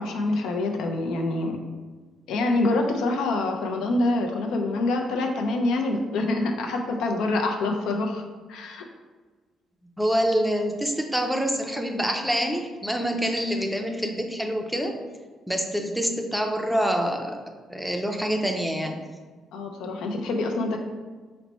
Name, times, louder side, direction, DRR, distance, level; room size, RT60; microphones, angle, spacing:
voice 1, 0.0-1.6 2.3-8.2 8.5-8.8 19.5-20.8, left 2 dB, 85° left, 3 dB, 0.5 m, -26 dB
voice 2, 10.0-15.0 15.5-17.4 17.7-19.0, equal, ahead, 3 dB, 0.4 m, -26 dB
4.2 x 2.1 x 4.0 m, 1.4 s
cardioid pair, 110°, 0 cm